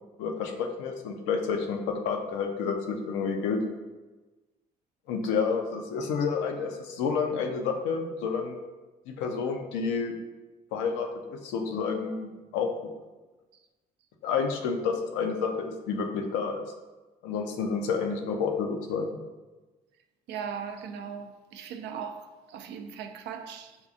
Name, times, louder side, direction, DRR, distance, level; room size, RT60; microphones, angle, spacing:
voice 1, 0.2-3.6 5.1-8.6 9.1-10.1 10.7-12.9 14.2-16.6 17.2-19.1, left 5 dB, 80° left, 0.5 m, -29 dB
voice 2, 20.3-23.8, right 7 dB, 65° right, 0.4 m, -39 dB
4.9 x 2.3 x 2.6 m
hypercardioid pair, 50°, 19 cm